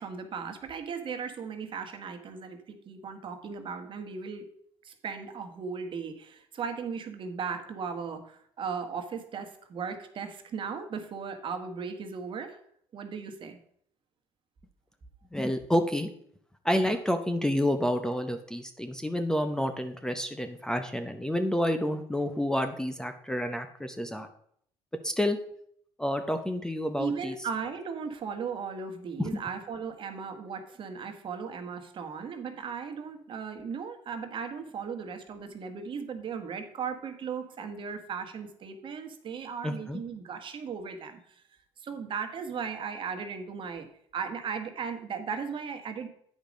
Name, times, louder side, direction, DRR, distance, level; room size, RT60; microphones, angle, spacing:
voice 1, 0.0-4.5 4.8-12.6 12.9-13.6 27.0-41.4 41.8-43.9 44.1-46.1, right 6 dB, 50° right, 6 dB, 1.3 m, -37 dB
voice 2, 15.3-16.1 16.6-24.3 25.0-25.4 26.0-27.4 29.2-29.3 39.6-40.0, left 1 dB, 5° left, 7 dB, 0.8 m, -29 dB
8.8 x 5.1 x 5.1 m, 0.67 s
supercardioid pair, 90°, 11 cm